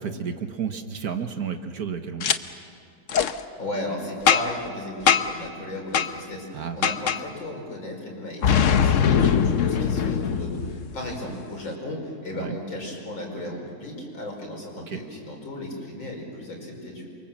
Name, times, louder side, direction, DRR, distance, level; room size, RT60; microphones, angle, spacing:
voice 1, 0.0-2.3 6.5-6.9 12.3-12.6 14.9-15.0, right 7 dB, 55° right, 7 dB, 1.6 m, -31 dB
Boom, 2.2-2.4 3.1-3.3 4.3-4.7 5.1-5.4 5.9-6.1 6.8-7.2 8.4-11.1, left 7 dB, 55° left, 0.9 m, -21 dB
voice 2, 3.3-17.1, left 1 dB, 85° left, 0 dB, 5.8 m, -35 dB
28.5 x 24.0 x 7.6 m, 2.3 s
omnidirectional pair, 2.1 m